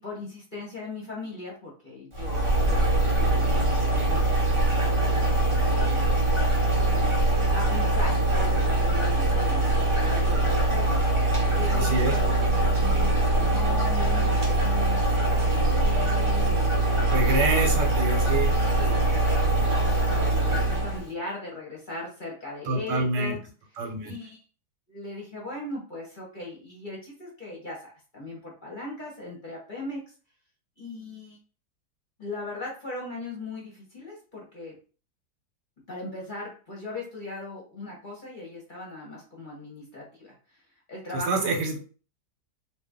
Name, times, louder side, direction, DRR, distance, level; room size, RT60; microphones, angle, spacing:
voice 1, 0.0-5.4 5.6-6.1 7.5-11.2 11.5-15.0 15.3-16.7 17.2-17.8 18.5-23.4 24.0-24.4 24.9-30.0 30.8-31.4 32.2-34.8 35.9-40.6 40.9-41.5, left 2 dB, 35° left, -3 dB, 1.0 m, -38 dB
sound 1, 2.1-21.1, right 2 dB, 25° right, 0.7 m, -23 dB
voice 2, 11.7-12.2 17.1-18.5 22.7-23.4 23.8-24.1 41.1-41.8, right 2 dB, 80° right, 2 dB, 1.4 m, -26 dB
2.8 x 2.5 x 3.5 m, 0.38 s
omnidirectional pair, 1.8 m